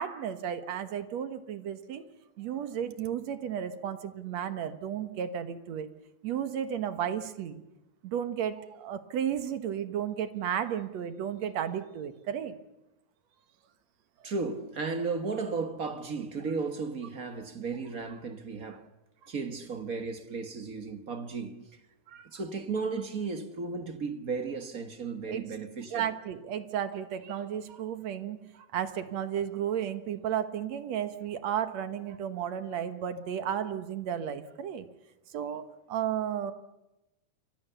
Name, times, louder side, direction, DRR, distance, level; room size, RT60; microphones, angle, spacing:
voice 1, 0.0-2.0 2.4-5.9 6.2-7.6 8.0-12.6 22.1-22.3 25.3-25.4 25.9-34.9 35.3-36.5, right 9 dB, 60° right, 2.3 m, -33 dB
voice 2, 14.2-18.9 19.3-21.6 22.3-26.1, right 4 dB, 40° right, 1.2 m, -34 dB
28.5 x 24.5 x 6.9 m
omnidirectional pair, 3.7 m